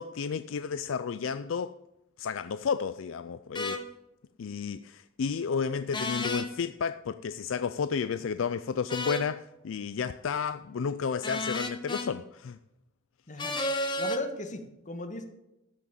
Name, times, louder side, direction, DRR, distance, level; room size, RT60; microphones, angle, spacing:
voice 1, 0.0-1.7 2.2-3.8 4.4-12.6, left 6 dB, 70° left, 0.4 m, -32 dB
sound 1, 3.5-3.8 5.9-6.5 8.9-9.3 11.2-12.1 13.4-14.2, left 1 dB, 25° left, 1.2 m, -31 dB
voice 2, 14.0-15.2, left 2 dB, 40° left, 1.7 m, -36 dB
14.0 x 6.2 x 7.1 m
head